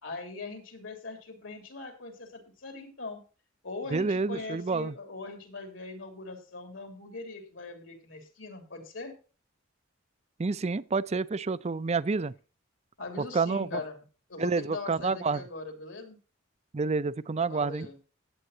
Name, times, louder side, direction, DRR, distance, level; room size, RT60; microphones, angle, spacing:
voice 1, 0.0-3.2 3.6-9.1 13.0-14.0 14.3-16.2 17.4-18.0, left 3 dB, 75° left, 3.3 m, -41 dB
voice 2, 3.9-4.9 10.4-12.3 13.2-13.8 14.4-15.4 16.7-17.9, right 4 dB, 35° right, 0.5 m, -29 dB
16.0 x 8.7 x 2.8 m
head